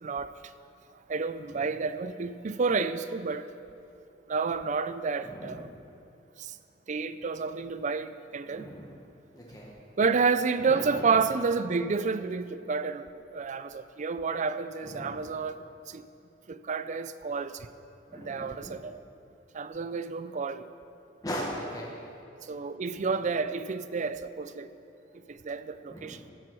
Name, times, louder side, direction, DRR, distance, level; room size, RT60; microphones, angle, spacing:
voice 1, 0.0-0.3 1.1-3.5 4.3-5.7 6.4-6.5 6.9-8.7 10.0-16.0 16.5-17.6 18.1-19.0 19.5-20.7 22.5-24.7 25.3-26.2, right 4 dB, 40° right, 0.4 m, -30 dB
voice 2, 5.2-5.7 8.5-8.9 9.3-9.7 10.6-11.2 14.8-15.3 18.1-18.8 21.2-21.9 25.9-26.3, equal, 20° left, 1.2 m, -39 dB
15.0 x 7.5 x 6.1 m
head